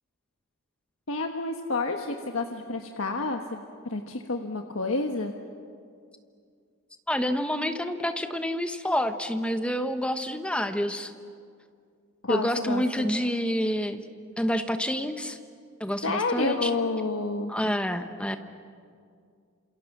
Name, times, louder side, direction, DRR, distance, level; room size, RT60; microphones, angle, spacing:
voice 1, 1.1-3.6 3.9-5.3 12.2-13.1 16.0-17.5, left 3 dB, 70° left, 4 dB, 1.4 m, -29 dB
voice 2, 7.1-11.1 12.3-14.1 14.4-15.4 15.8-16.8 17.5-18.4, equal, 5° left, 8 dB, 1.2 m, -28 dB
28.0 x 27.5 x 7.3 m, 2.2 s
head